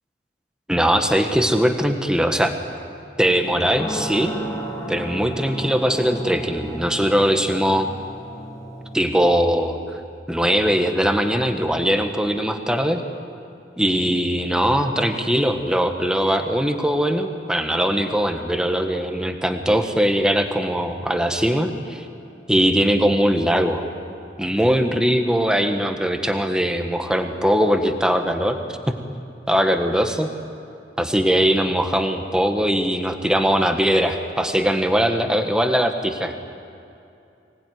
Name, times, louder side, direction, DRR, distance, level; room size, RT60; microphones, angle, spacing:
voice 1, 0.7-2.5 3.2-4.3 4.9-7.9 8.9-10.0 10.3-13.0 13.8-22.0 22.5-23.8 24.4-28.6 29.5-30.3 31.0-36.3, equal, 5° right, 5 dB, 1.5 m, -20 dB
sound 1, 3.5-9.0, right 1 dB, 25° left, 2.1 m, -33 dB
24.0 x 19.0 x 9.5 m, 2.7 s
head